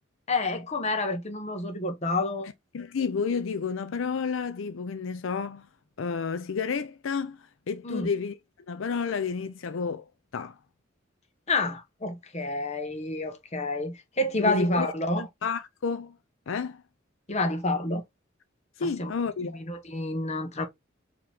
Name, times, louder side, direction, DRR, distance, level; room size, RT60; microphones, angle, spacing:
voice 1, 0.3-2.5 7.8-8.1 11.5-15.3 17.3-18.0 18.8-19.1 19.5-20.7, left 2 dB, 35° left, 1.1 m, -29 dB
voice 2, 2.7-5.7 6.0-8.4 8.7-10.1 10.3-10.6 14.4-14.9 15.4-16.2 16.5-16.8 18.8-19.6, left 5 dB, 85° left, 0.5 m, -30 dB
4.8 x 3.0 x 3.4 m
head